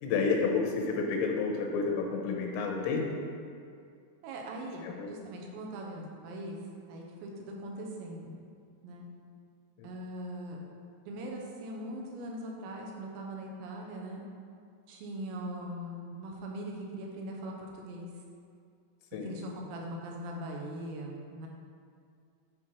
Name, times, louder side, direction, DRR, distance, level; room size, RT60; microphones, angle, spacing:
voice 1, 0.0-3.3 4.8-5.2 9.8-9.9 19.1-19.3, left 4 dB, 85° left, 1 dB, 3.6 m, -30 dB
voice 2, 4.2-6.6 6.9-8.3 8.8-9.1 9.8-10.6 11.1-14.2 14.9-18.1 19.2-21.5, right 1 dB, 85° right, 0 dB, 3.7 m, -41 dB
11.5 x 4.7 x 4.5 m, 2.3 s
omnidirectional pair, 5.7 m